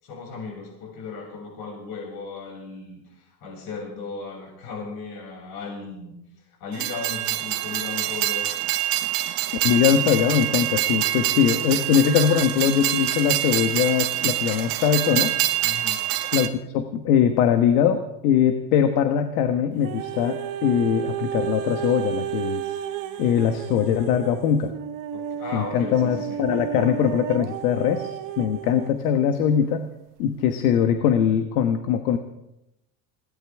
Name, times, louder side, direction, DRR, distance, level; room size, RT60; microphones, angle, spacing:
voice 1, 0.0-3.0 3.4-6.1 6.6-8.5 15.6-16.0 25.1-26.4, left 4 dB, 55° left, -1 dB, 6.9 m, -36 dB
Train, 6.7-16.5, right 14 dB, 90° right, 1.1 m, -25 dB
voice 2, 9.6-15.3 16.3-22.6 23.2-24.7 25.5-29.9 30.2-32.2, left 8 dB, 80° left, 7 dB, 1.4 m, -21 dB
sound 1, 19.8-28.9 29.6-29.7, right 10 dB, 45° right, 1.2 m, -32 dB
21.5 x 18.0 x 3.6 m, 0.85 s
supercardioid pair, 130°, 45 cm